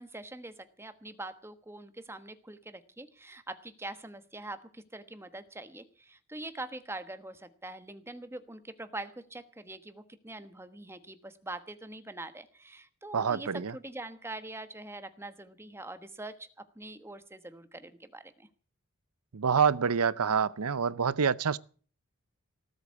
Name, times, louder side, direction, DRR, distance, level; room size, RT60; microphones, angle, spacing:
voice 1, 0.0-18.5, right 2 dB, 10° right, 1.2 m, -44 dB
voice 2, 13.1-13.7 19.3-21.6, right 6 dB, 85° right, 0.7 m, -27 dB
18.0 x 8.1 x 8.4 m
head